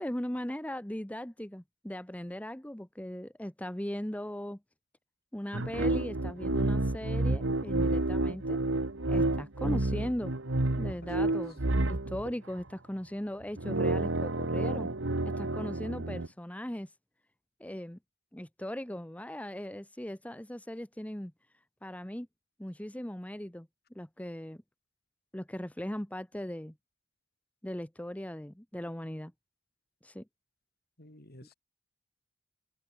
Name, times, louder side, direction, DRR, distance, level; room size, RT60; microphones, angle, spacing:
voice 1, 0.0-4.6 5.3-8.6 9.1-10.3 10.8-14.9 15.2-16.9 17.6-18.0 18.3-21.3 21.8-22.3 22.6-23.7 23.9-24.6 25.3-26.7 27.6-29.3 30.0-30.2, equal, 5° left, 1.1 m, -38 dB
sound 1, 5.5-12.3 13.4-16.3, right 2 dB, 80° right, 1.6 m, -30 dB
voice 2, 11.0-11.4 31.0-31.5, left 1 dB, 55° left, 5.5 m, -52 dB
head